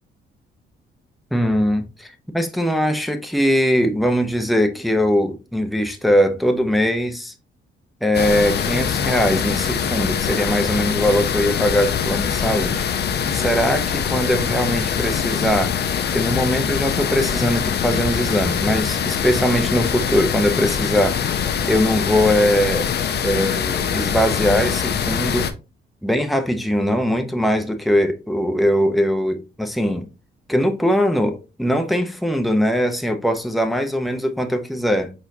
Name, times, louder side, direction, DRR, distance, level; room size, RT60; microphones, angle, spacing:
voice 1, 1.3-7.3 8.0-12.9 13.3-15.7 16.1-22.9 23.2-25.5 26.0-30.1 30.5-35.1, equal, ahead, 0.7 m, -21 dB
sound 1, 8.1-25.5, left 7 dB, 55° left, 0.6 m, -23 dB
4.5 x 4.2 x 2.7 m
cardioid pair, 90°, 20 cm